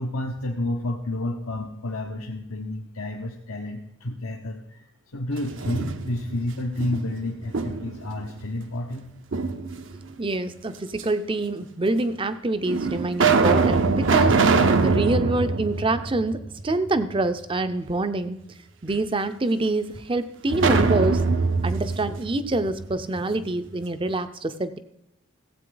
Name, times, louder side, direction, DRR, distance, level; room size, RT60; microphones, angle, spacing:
voice 1, 0.0-9.1, left 1 dB, 80° left, 0 dB, 1.1 m, -30 dB
sound 1, 5.4-6.3 6.8-8.1 9.3-10.1 11.0-11.1 12.0-12.1 12.7-16.8 17.1-17.2 20.5-23.3, right 4 dB, 60° right, 0.7 m, -23 dB
voice 2, 10.2-18.4 18.8-21.2 21.6-24.8, right 2 dB, 25° right, 11 dB, 0.6 m, -26 dB
15.5 x 8.3 x 3.9 m, 0.82 s
head